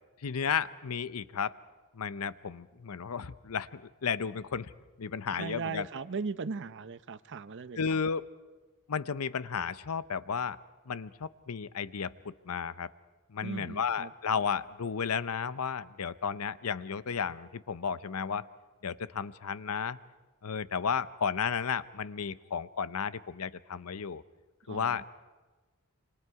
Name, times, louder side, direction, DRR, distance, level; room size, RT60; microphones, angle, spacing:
voice 1, 0.2-1.5 1.9-4.7 5.0-5.9 7.8-8.2 8.9-10.6 10.9-12.9 13.3-18.5 18.8-20.0 20.4-24.2 24.7-25.0, left 6 dB, 80° left, 16 dB, 0.7 m, -33 dB
voice 2, 5.3-8.0 13.4-14.1 24.7-25.0, right 4 dB, 55° right, 14 dB, 0.7 m, -38 dB
27.0 x 26.0 x 4.8 m, 1.3 s
head